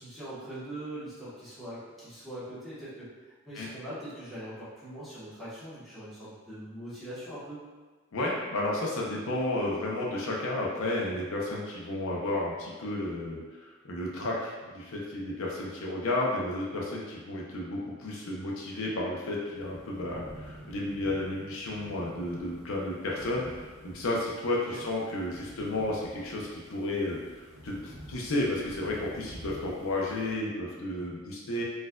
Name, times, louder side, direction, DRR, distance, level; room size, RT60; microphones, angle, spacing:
voice 1, 0.0-7.6 24.7-24.9, right 1 dB, ahead, -13 dB, 1.1 m, -42 dB
voice 2, 8.1-31.6, left 1 dB, 75° left, -3 dB, 0.5 m, -32 dB
sound 1, 19.5-30.3, equal, 45° right, 0.8 m, -49 dB
4.1 x 2.5 x 2.2 m, 1.3 s
head